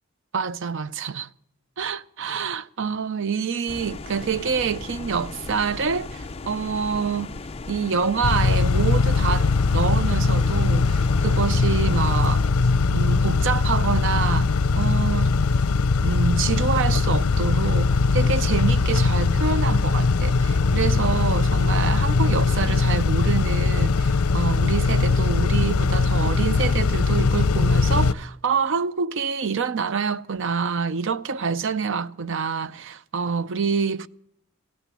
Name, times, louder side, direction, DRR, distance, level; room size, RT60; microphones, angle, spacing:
voice 1, 0.3-1.3 1.8-7.3 7.7-9.5 9.7-12.5 12.9-15.3 16.0-34.1, right 5 dB, 55° right, 0.5 m, -26 dB
sound 1, 3.7-12.5, left 3 dB, 25° left, 0.5 m, -37 dB
Car / Idling / Accelerating revving vroom, 8.2-28.1, left 4 dB, 75° left, 0.6 m, -20 dB
17.0 x 9.1 x 8.4 m
head